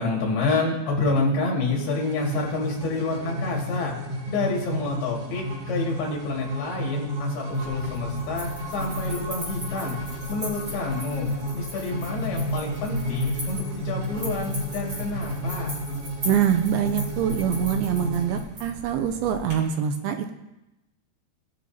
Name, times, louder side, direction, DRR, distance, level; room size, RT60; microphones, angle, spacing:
voice 1, 0.0-4.0 4.3-10.0 10.3-15.8, left 3 dB, 75° left, -2 dB, 3.9 m, -28 dB
sound 1, 1.7-18.4, equal, 50° right, 1.8 m, -32 dB
sound 2, 7.5-19.5, left 1 dB, 25° right, 3.0 m, -39 dB
voice 2, 16.3-20.3, right 9 dB, 80° right, 6 dB, 2.4 m, -24 dB
19.0 x 6.6 x 2.8 m, 0.94 s
omnidirectional pair, 4.5 m